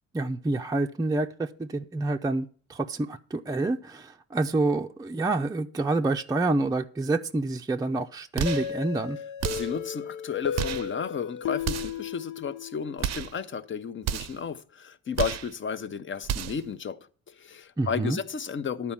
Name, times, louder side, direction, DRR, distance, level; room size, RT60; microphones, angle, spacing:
voice 1, 0.1-9.2 17.8-18.2, right 2 dB, 10° right, 0.5 m, -28 dB
sound 1, 8.4-8.7 9.4-9.8 10.5-10.9 11.6-12.0 13.0-13.4 14.0-14.4 15.1-15.5 16.2-16.7, right 10 dB, 60° right, 0.6 m, -31 dB
sound 2, 8.5-13.1, left 8 dB, 75° left, 0.7 m, -35 dB
voice 2, 9.5-18.9, left 6 dB, 40° left, 0.8 m, -33 dB
11.5 x 4.5 x 7.2 m
cardioid pair, 90°, 30 cm